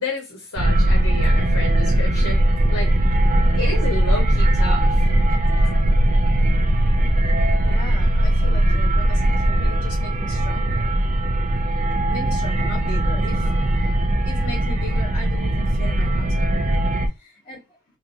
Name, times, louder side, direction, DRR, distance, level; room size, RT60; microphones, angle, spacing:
voice 1, 0.0-3.0 3.5-5.1, left 3 dB, 65° left, 0.9 m, -31 dB
sound 1, 0.6-17.1, right 1 dB, 35° right, 0.6 m, -19 dB
voice 2, 7.6-10.9 12.1-13.5 14.2-16.8 17.2-17.6, left 2 dB, 40° left, 2.0 m, -38 dB
3.7 x 2.8 x 2.9 m
head